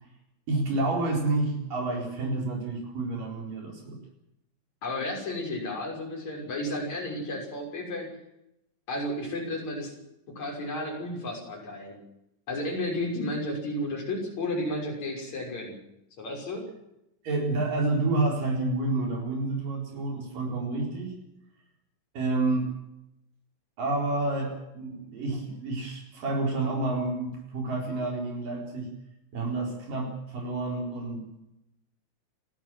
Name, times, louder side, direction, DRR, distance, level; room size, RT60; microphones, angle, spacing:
voice 1, 0.5-4.0 17.2-21.1 22.1-22.7 23.8-28.9 29.3-31.3, right 2 dB, 70° right, 0 dB, 6.0 m, -29 dB
voice 2, 4.8-8.1 8.9-9.9 10.4-12.0 12.5-15.8 16.2-16.6, left 1 dB, 55° left, 0 dB, 7.2 m, -32 dB
29.0 x 13.0 x 7.7 m, 0.86 s
omnidirectional pair, 4.0 m